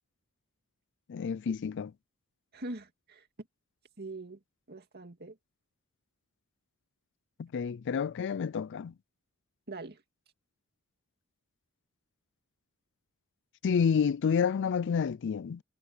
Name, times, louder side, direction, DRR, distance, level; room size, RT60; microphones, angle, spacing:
voice 1, 1.1-1.9 7.4-8.9 13.6-15.6, left 6 dB, 55° left, 0.4 m, -29 dB
voice 2, 2.5-3.3 4.0-4.4 4.7-5.4 9.7-10.0, right 2 dB, 45° right, 2.3 m, -42 dB
head